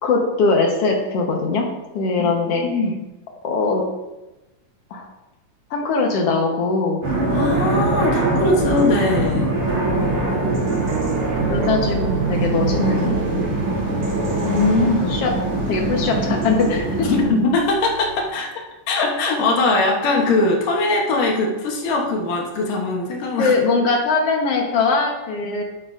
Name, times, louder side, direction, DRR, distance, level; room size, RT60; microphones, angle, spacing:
voice 1, 0.0-1.7 1.9-2.7 3.4-3.8 4.9-5.1 5.7-7.0 11.5-13.2 15.1-15.3 15.7-17.4 23.4-25.6, left 4 dB, 60° left, 1 dB, 1.7 m, -21 dB
voice 2, 2.2-3.0 7.3-9.5 14.4-15.2 17.1-18.5 18.9-23.5, left 2 dB, 75° left, 0 dB, 2.6 m, -21 dB
sound 1, 7.0-17.3, right 2 dB, 60° right, 4.2 m, -22 dB
sound 2, 10.4-18.3, right 5 dB, 80° right, 1.6 m, -29 dB
11.0 x 8.8 x 2.6 m, 1.0 s
omnidirectional pair, 3.8 m